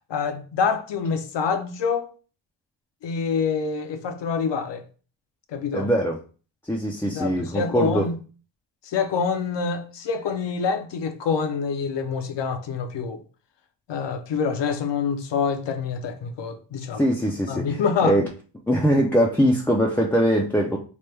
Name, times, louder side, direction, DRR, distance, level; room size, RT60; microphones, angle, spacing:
voice 1, 0.1-2.1 3.0-4.8 5.5-5.9 7.1-8.2 8.8-13.2 13.9-17.0 17.5-18.2, left 5 dB, 70° left, 0.6 m, -26 dB
voice 2, 5.7-6.2 6.7-8.0 17.0-17.7 18.0-18.3 18.7-20.8, equal, 5° left, 0.3 m, -21 dB
3.2 x 2.1 x 3.2 m
cardioid pair, 95°, 45 cm